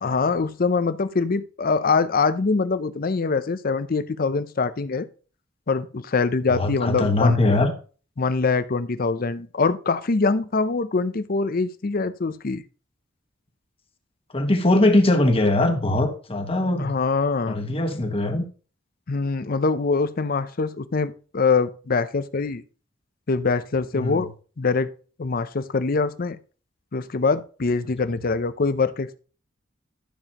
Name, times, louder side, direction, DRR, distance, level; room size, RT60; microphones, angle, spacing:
voice 1, 0.0-5.1 5.7-7.4 8.2-12.6 16.8-17.6 19.1-22.6 23.3-24.3 24.6-24.9 25.2-26.4 26.9-29.2, left 4 dB, 50° left, 0.6 m, -23 dB
voice 2, 6.5-7.7 14.3-16.9 17.5-18.4 23.9-24.3, left 2 dB, 30° left, 1.4 m, -21 dB
12.5 x 7.0 x 2.9 m
head